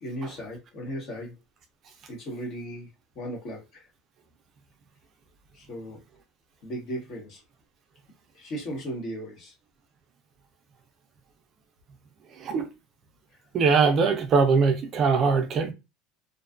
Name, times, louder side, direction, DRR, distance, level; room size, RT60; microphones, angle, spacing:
voice 1, 0.0-1.4 2.1-2.9 3.2-3.8 5.5-6.0 6.6-7.4 8.3-9.5, equal, 40° left, 1.0 m, -36 dB
voice 2, 12.4-12.7 13.5-15.7, right 5 dB, 35° right, 0.4 m, -21 dB
2.5 x 2.3 x 2.4 m
cardioid pair, 155°, 0 cm